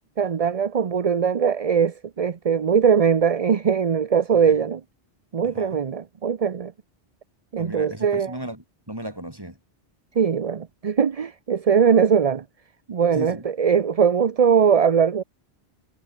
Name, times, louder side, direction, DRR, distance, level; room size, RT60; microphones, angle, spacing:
voice 1, 0.2-4.8 5.3-6.7 7.5-8.3 10.2-12.4 12.9-15.2, right 7 dB, 40° right, 0.7 m, -20 dB
voice 2, 5.4-5.8 7.6-9.6 13.1-13.5, right 1 dB, 20° right, 4.0 m, -35 dB
omnidirectional pair, 1.1 m